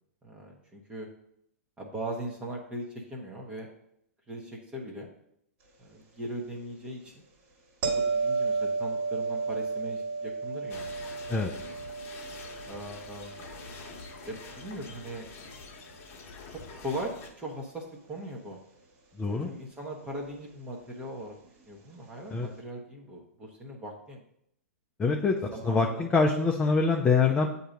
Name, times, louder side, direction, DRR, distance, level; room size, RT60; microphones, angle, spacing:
voice 1, 0.2-1.1 1.8-3.7 4.3-5.1 5.8-7.1 7.8-10.9 12.7-13.4 14.3-15.3 16.5-18.6 19.5-21.3 21.7-24.2 25.5-26.1, right 1 dB, 15° right, -1 dB, 1.0 m, -39 dB
sound 1, 7.8-14.8 20.1-20.2, right 4 dB, 45° right, 1.7 m, -33 dB
sound 2, 10.7-17.3, left 4 dB, 30° left, 1.1 m, -46 dB
voice 2, 19.2-19.5 22.3-22.5 25.0-25.4 25.6-27.5, left 4 dB, 15° left, 1 dB, 0.5 m, -24 dB
7.7 x 2.8 x 5.1 m, 0.73 s
hypercardioid pair, 120°, 8 cm